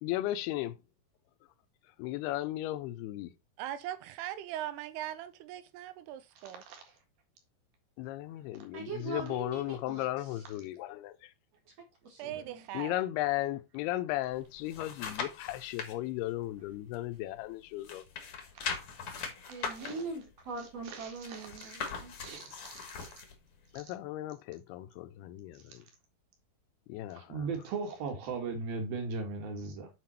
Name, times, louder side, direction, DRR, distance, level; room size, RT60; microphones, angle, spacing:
voice 1, 0.0-0.8 2.0-3.3 8.0-11.3 12.7-18.0 23.7-25.9 26.9-27.5, left 15 dB, 85° left, 2.6 m, -36 dB
voice 2, 3.6-6.6 12.2-13.0, right 12 dB, 90° right, 2.9 m, -40 dB
voice 3, 6.4-6.8 12.2-12.4 19.6-20.0 20.9-21.7 22.2-23.1 27.2-29.9, right 4 dB, 70° right, 3.4 m, -39 dB
voice 4, 8.7-10.1 11.7-11.8 12.0-12.7 19.5-22.2, right 3 dB, 50° right, 2.4 m, -41 dB
sound 1, 14.3-15.9 16.4-17.5 17.8-23.3 23.8-23.9, left 6 dB, 60° left, 1.6 m, -40 dB
7.6 x 5.2 x 4.2 m
omnidirectional pair, 4.5 m